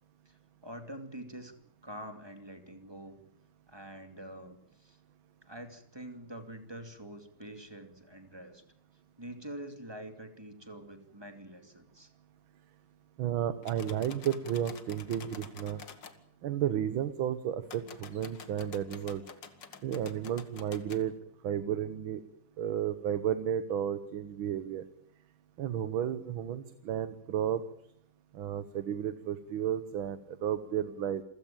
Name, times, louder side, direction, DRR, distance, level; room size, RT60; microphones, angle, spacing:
voice 1, 0.3-1.5 1.8-3.2 3.7-5.0 5.4-8.6 9.2-12.1, right 1 dB, 10° right, 7 dB, 2.5 m, -46 dB
voice 2, 13.2-15.8 16.4-19.2 19.8-21.1 21.4-22.2 22.6-24.8 25.6-27.6 28.3-31.2, right 10 dB, 70° right, 12 dB, 1.8 m, -32 dB
sound 1, 13.6-16.2 17.6-21.0, left 6 dB, 55° left, 2.3 m, -49 dB
28.0 x 16.0 x 9.0 m, 0.73 s
omnidirectional pair, 2.4 m